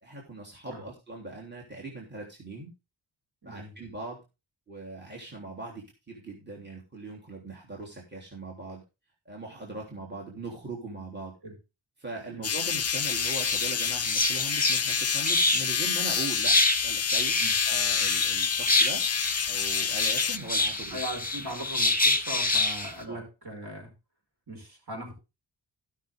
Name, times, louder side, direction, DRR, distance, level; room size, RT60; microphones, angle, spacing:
voice 1, 0.0-2.7 3.4-4.2 4.7-8.8 9.2-11.4 12.0-16.6 16.8-17.4 17.6-19.0 19.4-21.0 23.1-23.2, right 3 dB, 20° right, -3 dB, 3.2 m, -40 dB
voice 2, 3.4-3.8 11.4-11.6 12.3-12.4 17.4-17.5 20.9-23.9 24.5-25.1, right 1 dB, 55° right, 2 dB, 5.4 m, -39 dB
sound 1, 12.4-20.4, left 8 dB, 35° left, 0.5 m, -28 dB
sound 2, 12.7-22.9, left 2 dB, 20° left, 2.0 m, -28 dB
16.5 x 6.2 x 3.6 m, 0.27 s
wide cardioid pair, 65°, 47 cm